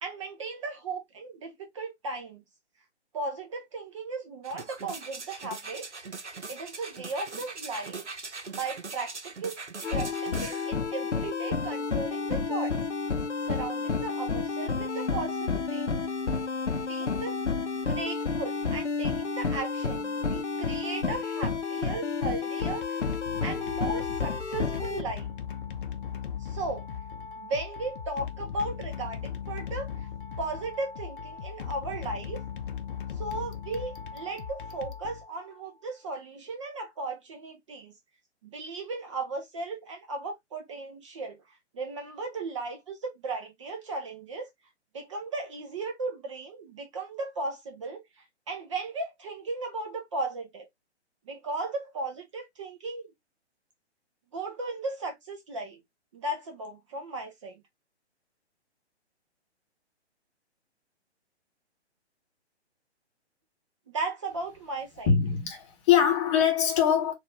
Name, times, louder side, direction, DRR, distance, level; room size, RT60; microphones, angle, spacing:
voice 1, 0.0-2.4 3.1-5.9 6.5-8.1 8.5-9.6 9.9-12.8 13.4-15.9 16.9-17.4 17.9-23.1 23.4-25.3 26.4-26.9 27.4-30.1 30.4-32.4 33.1-37.9 38.4-44.5 44.9-50.7 51.3-53.1 54.3-55.8 56.1-57.6 63.9-65.1, right 3 dB, 30° right, 0.6 m, -36 dB
sound 1, 4.4-10.7 11.2-11.3, right 4 dB, 85° right, 0.9 m, -41 dB
sound 2, 9.8-25.0, left 5 dB, 90° left, 0.7 m, -30 dB
sound 3, 22.5-35.7, left 7 dB, 50° left, 0.7 m, -38 dB
voice 2, 65.1-67.1, left 8 dB, 25° left, 1.0 m, -23 dB
4.2 x 2.5 x 3.3 m
figure-of-eight pair, 130°, 34 cm